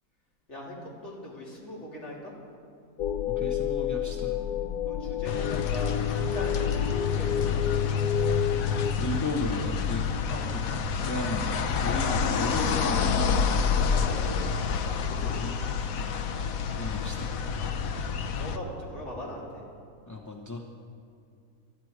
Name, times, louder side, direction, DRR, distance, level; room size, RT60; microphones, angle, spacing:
voice 1, 1.0-2.3 4.9-6.1 6.3-8.1 10.3-10.5 13.5-14.5 14.9-15.3 18.4-19.4, left 1 dB, 45° left, -5 dB, 3.8 m, -40 dB
sound 1, 3.0-8.9, left 9 dB, 85° left, 1.2 m, -30 dB
voice 2, 3.3-4.4 9.0-10.0 10.7-13.4 15.2-15.5 15.9-16.3 16.7-17.3 20.1-20.6, left 2 dB, 15° left, 0 dB, 0.6 m, -35 dB
sound 2, 5.2-18.6, left 6 dB, 65° left, 1.1 m, -28 dB
22.0 x 13.5 x 4.8 m, 2.4 s
omnidirectional pair, 1.6 m